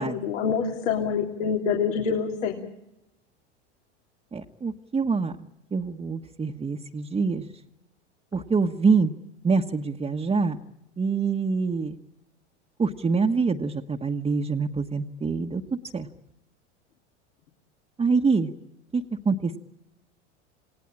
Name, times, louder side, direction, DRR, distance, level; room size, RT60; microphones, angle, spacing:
voice 1, 0.0-2.6, left 6 dB, 80° left, 1 dB, 3.5 m, -26 dB
voice 2, 4.3-5.3 5.7-7.5 8.3-9.1 9.4-10.6 11.0-12.0 12.8-16.1 18.0-18.5 18.9-19.6, right 4 dB, 15° right, 1 dB, 1.3 m, -25 dB
28.5 x 18.5 x 8.8 m, 0.90 s
hypercardioid pair, 105°, 36 cm